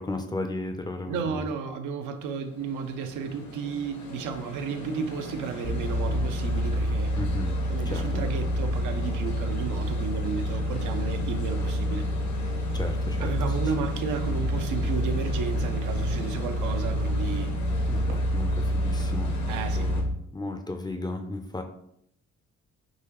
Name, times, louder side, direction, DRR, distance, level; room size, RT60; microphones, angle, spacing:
voice 1, 0.0-1.5 7.2-7.6 7.8-8.3 12.5-13.7 17.9-21.6, left 2 dB, 15° left, 0.4 m, -35 dB
voice 2, 1.1-7.1 7.7-12.0 13.2-17.5 19.5-19.9, right 6 dB, 80° right, 0.5 m, -33 dB
sound 1, 2.2-20.0, left 1 dB, 70° left, 0.9 m, -39 dB
sound 2, 5.6-20.1, equal, 65° right, 1.0 m, -28 dB
3.9 x 2.8 x 2.9 m
cardioid pair, 90°, 30 cm